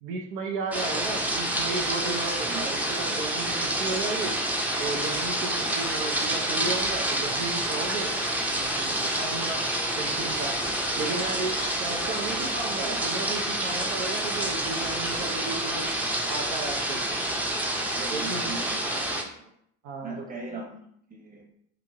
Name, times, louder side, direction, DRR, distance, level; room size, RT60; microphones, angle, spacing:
voice 1, 0.0-4.4 4.8-8.1 8.5-9.6 10.0-10.6 11.0-15.9 16.3-17.2 18.1-18.5 19.8-20.2, right 3 dB, 80° right, 1 dB, 0.6 m, -34 dB
sound 1, 0.7-19.2, right 1 dB, 5° right, 0.5 m, -28 dB
voice 2, 11.0-11.4 11.8-12.2 12.7-13.0 17.9-18.9 20.0-20.8 21.1-21.4, right 3 dB, 25° right, 0 dB, 1.0 m, -38 dB
3.0 x 2.5 x 2.7 m, 0.69 s
hypercardioid pair, 75°, 34 cm